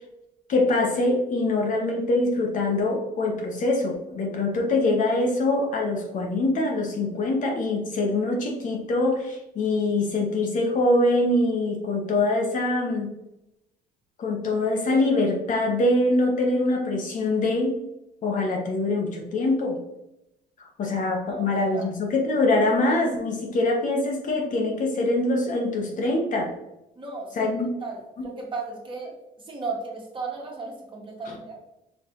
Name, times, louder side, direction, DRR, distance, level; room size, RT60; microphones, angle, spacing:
voice 1, 0.5-13.1 14.2-17.8 18.2-19.8 20.8-26.5 27.3-27.7 28.2-28.3 31.3-31.4, left 2 dB, 50° left, 1 dB, 1.0 m, -24 dB
voice 2, 26.9-27.4 27.8-29.1 29.4-31.5, right 4 dB, 30° right, -2 dB, 1.5 m, -35 dB
5.3 x 3.3 x 3.0 m, 0.89 s
cardioid pair, 110°, 17 cm